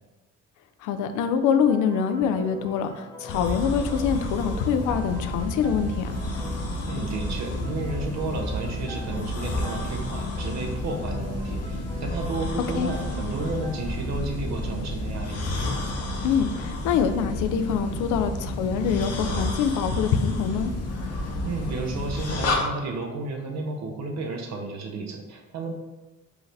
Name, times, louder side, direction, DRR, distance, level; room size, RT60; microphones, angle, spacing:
voice 1, 0.8-6.2 12.8-12.9 16.2-20.7, left 7 dB, 85° left, 8 dB, 0.5 m, -25 dB
sound 1, 1.7-13.9, equal, 15° left, 1.0 m, -44 dB
sound 2, 3.3-22.6, left 1 dB, 55° left, 0.8 m, -30 dB
voice 2, 6.9-15.4 21.5-25.7, right 3 dB, 60° right, 2 dB, 0.7 m, -32 dB
4.7 x 2.6 x 3.3 m, 1.1 s
cardioid pair, 90°, 30 cm